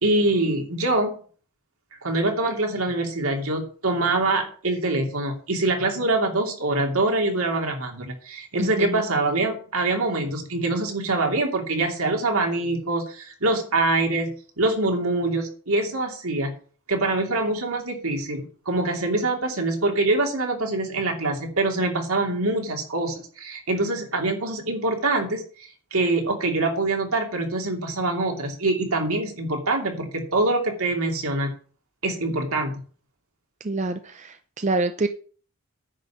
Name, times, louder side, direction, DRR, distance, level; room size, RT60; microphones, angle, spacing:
voice 1, 0.0-1.1 2.0-16.5 16.9-25.4 25.9-31.5 32.0-32.7, right 2 dB, 75° right, 2 dB, 2.8 m, -24 dB
voice 2, 8.6-9.0 33.6-35.1, right 2 dB, 30° right, 9 dB, 0.6 m, -26 dB
10.0 x 5.5 x 7.4 m, 0.42 s
head